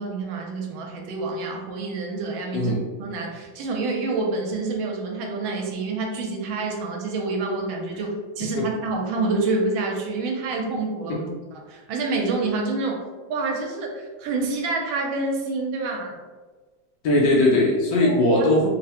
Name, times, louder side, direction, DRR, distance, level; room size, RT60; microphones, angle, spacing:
voice 1, 0.0-2.7 3.0-13.0 13.3-16.1 18.0-18.5, right 3 dB, 80° right, 1 dB, 1.4 m, -27 dB
voice 2, 17.0-18.7, left 1 dB, 70° left, -2 dB, 1.1 m, -19 dB
3.5 x 2.0 x 2.8 m, 1.3 s
omnidirectional pair, 2.1 m